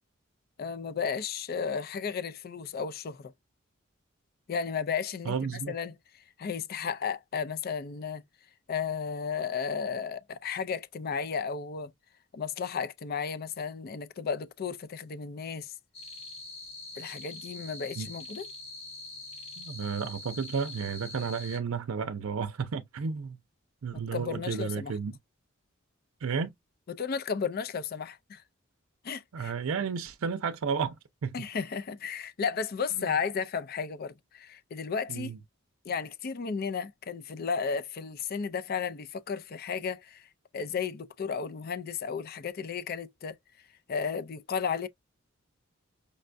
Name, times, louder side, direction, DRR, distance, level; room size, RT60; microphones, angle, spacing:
voice 1, 0.6-3.3 4.5-5.9 6.4-8.2 8.7-11.9 12.3-15.7 17.0-18.5 23.9-24.9 26.9-28.4 29.0-29.5 31.3-35.3 35.9-43.4 43.9-44.9, left 6 dB, 45° left, 0.4 m, -34 dB
voice 2, 5.3-5.7 18.0-18.1 19.6-23.4 23.8-25.1 26.2-26.5 29.3-30.9 31.2-31.3 33.0-33.1 35.1-35.4, right 6 dB, 80° right, 0.5 m, -32 dB
sound 1, 15.9-21.6, left 2 dB, 30° left, 0.8 m, -44 dB
5.2 x 2.2 x 2.5 m
head